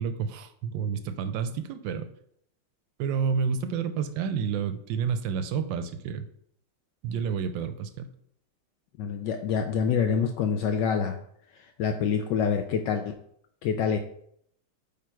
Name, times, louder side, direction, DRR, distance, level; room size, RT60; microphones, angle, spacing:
voice 1, 0.0-2.1 3.0-6.3 7.0-8.1, right 6 dB, 75° right, 10 dB, 1.2 m, -29 dB
voice 2, 9.0-11.2 11.8-13.1 13.6-14.0, left 6 dB, 75° left, 6 dB, 1.1 m, -26 dB
8.7 x 3.5 x 4.5 m, 0.69 s
omnidirectional pair, 2.3 m